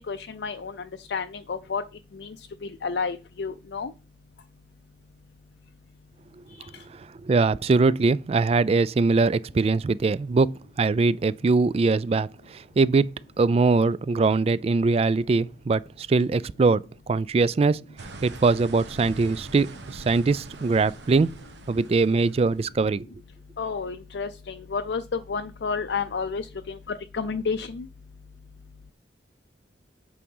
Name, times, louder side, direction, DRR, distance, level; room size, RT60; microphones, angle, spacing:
voice 1, 0.1-1.8 2.1-2.4 2.6-3.9 6.5-6.7 23.6-27.9, left 5 dB, 65° left, 0.5 m, -31 dB
voice 2, 7.2-12.3 12.5-17.8 18.2-21.3 21.7-23.0, right 3 dB, 35° right, 0.3 m, -22 dB
sound 1, 18.0-22.8, right 2 dB, 80° right, 1.1 m, -43 dB
8.5 x 4.8 x 5.4 m
head